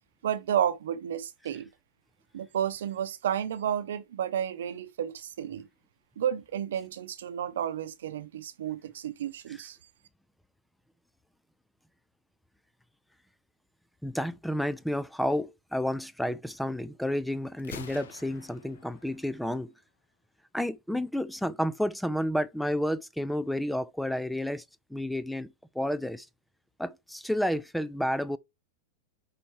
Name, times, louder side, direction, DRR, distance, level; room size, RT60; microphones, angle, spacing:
voice 1, 0.2-1.7 2.3-5.7 6.2-9.8, right 9 dB, 80° right, 0.8 m, -31 dB
voice 2, 14.0-19.7 20.5-24.6 24.9-26.3 26.8-28.4, equal, ahead, 0.4 m, -31 dB
Gunshot gunfire, 17.6-19.6, left 6 dB, 85° left, 1.0 m, -47 dB
5.5 x 4.2 x 4.7 m
hypercardioid pair, 120°, 0 cm